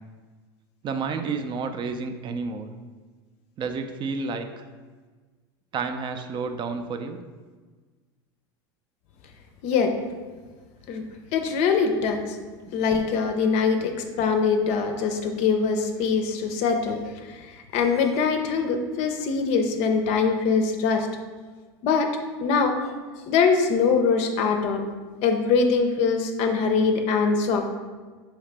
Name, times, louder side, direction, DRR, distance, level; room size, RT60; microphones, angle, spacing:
voice 1, 0.8-2.7 3.6-4.7 5.7-7.2, right 4 dB, 35° right, 7 dB, 0.4 m, -30 dB
voice 2, 9.6-9.9 10.9-11.0 11.3-12.2 12.7-17.0 17.7-21.1 21.8-22.1 22.4-22.9 23.3-24.8 25.2-27.6, left 5 dB, 55° left, 5 dB, 0.5 m, -23 dB
4.8 x 2.9 x 3.3 m, 1.4 s
hypercardioid pair, 95°, 14 cm